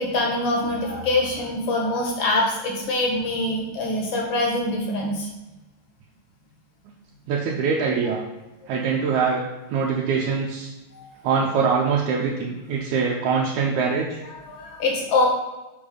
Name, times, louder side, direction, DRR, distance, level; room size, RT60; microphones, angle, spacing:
voice 1, 0.0-5.3 10.9-11.1 14.2-15.3, left 2 dB, 55° left, -1 dB, 1.5 m, -24 dB
voice 2, 7.3-8.2 8.7-9.4 9.7-10.7 11.2-14.2, right 5 dB, 85° right, -3 dB, 2.1 m, -23 dB
6.1 x 3.4 x 5.2 m, 1.1 s
omnidirectional pair, 3.3 m